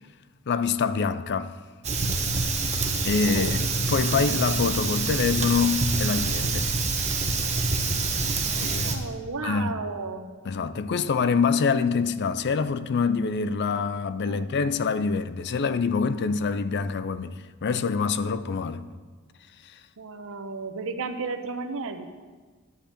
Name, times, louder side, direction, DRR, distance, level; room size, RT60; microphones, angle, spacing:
voice 1, 0.5-1.5 3.0-6.7 8.6-9.0 9.4-9.8 10.5-18.9, left 5 dB, 50° left, 0.4 m, -25 dB
Fire, 1.8-9.0, right 3 dB, 30° right, 1.1 m, -26 dB
voice 2, 3.2-3.5 8.4-10.3 14.3-14.5 20.0-22.0, right 4 dB, 65° right, 0.9 m, -34 dB
11.0 x 5.3 x 8.5 m
head